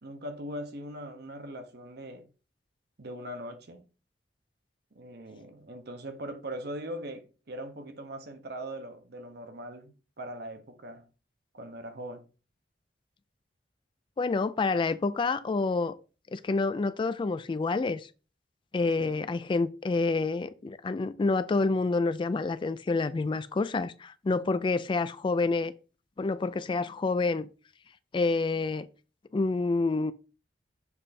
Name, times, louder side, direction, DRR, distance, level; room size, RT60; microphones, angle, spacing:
voice 1, 0.0-2.2 3.0-3.8 4.9-11.1 11.5-12.3 19.0-19.2, right 1 dB, 60° right, 1.0 m, -41 dB
voice 2, 14.2-15.9 16.3-18.1 18.7-25.7 26.2-27.5 28.1-28.9 29.3-30.1, left 3 dB, 30° left, 0.3 m, -28 dB
7.1 x 3.3 x 4.2 m
head